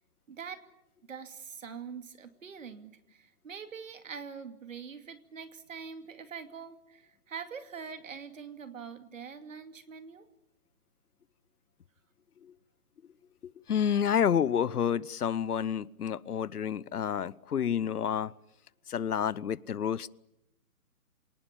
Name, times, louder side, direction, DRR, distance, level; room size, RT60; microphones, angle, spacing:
voice 1, 0.3-0.6 1.0-10.3, right 6 dB, 55° right, 9 dB, 2.6 m, -44 dB
voice 2, 13.7-18.3 18.9-20.1, left 8 dB, 75° left, 22 dB, 0.9 m, -29 dB
27.0 x 19.5 x 8.9 m, 0.87 s
hypercardioid pair, 165°, 46 cm